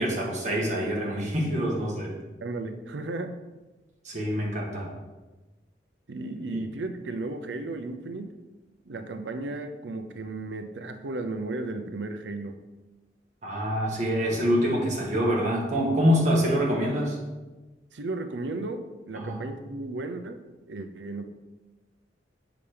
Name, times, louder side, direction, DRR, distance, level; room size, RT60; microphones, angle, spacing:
voice 1, 0.0-2.1 4.0-4.9 6.5-6.6 13.4-17.2 19.1-19.4, equal, 45° right, -3 dB, 1.6 m, -25 dB
voice 2, 2.4-3.4 6.1-8.3 8.9-12.6 17.9-21.2, right 2 dB, 85° right, 8 dB, 0.6 m, -34 dB
7.0 x 5.8 x 3.4 m, 1.2 s
head